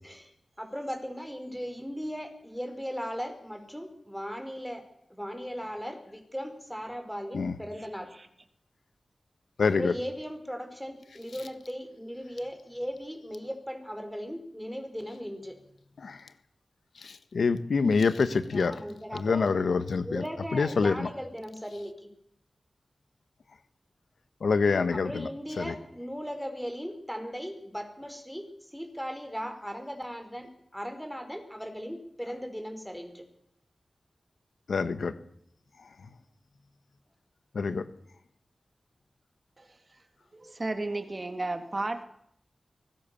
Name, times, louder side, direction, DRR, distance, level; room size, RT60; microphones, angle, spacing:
voice 1, 0.6-4.8 5.1-8.1 9.6-15.6 18.5-19.4 20.0-21.9 24.9-33.2, equal, ahead, 6 dB, 5.3 m, -38 dB
voice 2, 9.6-9.9 16.0-16.3 17.0-18.8 19.1-20.2 20.5-21.1 24.4-25.3 25.6-25.7 34.7-35.1 37.5-37.8, left 4 dB, 90° left, 12 dB, 1.4 m, -26 dB
voice 3, 40.3-42.0, right 2 dB, 40° right, 8 dB, 2.3 m, -33 dB
23.5 x 19.5 x 7.1 m, 0.71 s
wide cardioid pair, 65°, 0 cm